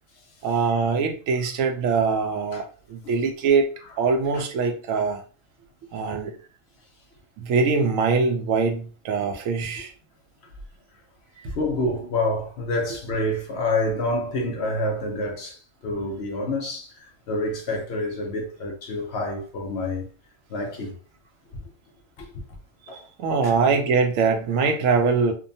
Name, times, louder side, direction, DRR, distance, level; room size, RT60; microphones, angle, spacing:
voice 1, 0.4-2.6 2.9-5.2 5.9-6.3 7.4-9.9 22.9-25.3, right 5 dB, 85° right, 1.0 m, -23 dB
voice 2, 11.6-20.1 20.5-20.9 21.5-21.6 22.2-22.4 22.9-23.0, left 2 dB, 60° left, 0.8 m, -28 dB
2.7 x 2.1 x 2.6 m
omnidirectional pair, 1.3 m